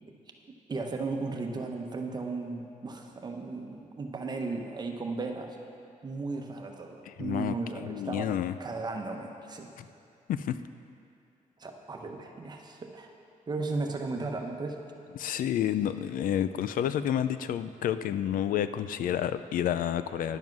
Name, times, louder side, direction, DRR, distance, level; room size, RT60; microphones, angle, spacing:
voice 1, 0.7-5.6 6.0-8.3 8.6-9.7 11.6-13.1 13.5-14.8, right 3 dB, 30° right, 2 dB, 0.9 m, -35 dB
voice 2, 7.1-8.5 9.8-9.9 10.3-10.6 15.2-20.4, left 10 dB, 90° left, 13 dB, 0.4 m, -30 dB
11.0 x 7.4 x 6.0 m, 2.5 s
wide cardioid pair, 150°, 14 cm